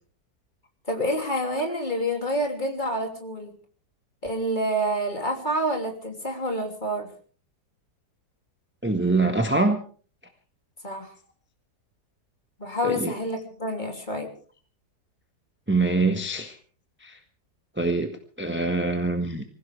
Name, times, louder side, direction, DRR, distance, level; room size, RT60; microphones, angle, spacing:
voice 1, 0.9-3.5 4.2-7.1 10.8-11.1 12.6-14.3, equal, 25° left, 3 dB, 3.1 m, -28 dB
voice 2, 8.8-9.8 12.8-13.1 15.7-16.6 17.0-17.2 17.8-19.4, right 3 dB, 5° right, 4 dB, 1.3 m, -24 dB
25.0 x 16.0 x 3.4 m, 0.42 s
omnidirectional pair, 1.8 m